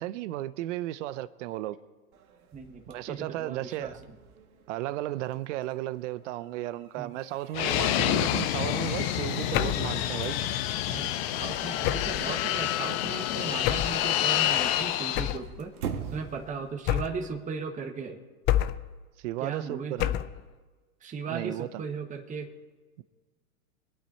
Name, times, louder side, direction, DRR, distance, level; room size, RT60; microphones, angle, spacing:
voice 1, 0.0-1.8 2.9-4.0 4.7-10.4 19.2-20.1 21.3-21.8 23.0-23.1, right 14 dB, 55° right, 0.7 m, -34 dB
sound 1, 2.1-17.2, right 7 dB, 75° right, 1.6 m, -46 dB
voice 2, 2.5-3.9 7.0-7.1 10.9-15.7 16.1-18.2 19.4-20.2 21.0-22.5, right 5 dB, 15° right, 1.5 m, -37 dB
Fixed-wing aircraft airplane, 7.5-15.4, left 12 dB, 45° left, 0.9 m, -28 dB
sound 2, 9.5-9.9 11.8-12.3 13.6-14.0 15.2-15.5 16.9-17.3 18.5-18.9 20.0-20.4, left 13 dB, 25° left, 0.4 m, -28 dB
24.5 x 9.1 x 4.2 m
hypercardioid pair, 110°, 44 cm